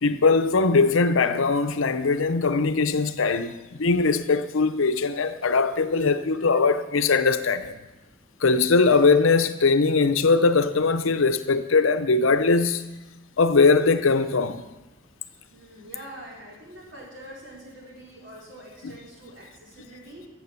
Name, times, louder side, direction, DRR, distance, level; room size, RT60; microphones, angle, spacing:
voice 1, 0.0-7.8 8.4-12.8 13.4-14.6, left 4 dB, 80° left, 0.7 m, -21 dB
voice 2, 15.5-20.3, right 1 dB, 65° right, 4.1 m, -44 dB
14.0 x 7.6 x 5.9 m
head